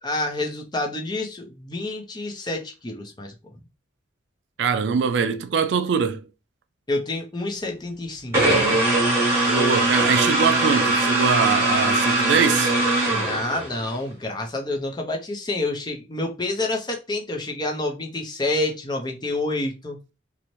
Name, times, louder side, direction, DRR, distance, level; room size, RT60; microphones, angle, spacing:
voice 1, 0.0-3.3 6.9-8.4 12.0-12.6 13.1-20.0, left 2 dB, 20° left, 0.5 m, -28 dB
voice 2, 4.6-6.3 9.5-12.7, right 6 dB, 65° right, 0.3 m, -23 dB
sound 1, 8.3-13.9, right 2 dB, 15° right, 1.1 m, -21 dB
2.6 x 2.0 x 2.9 m
head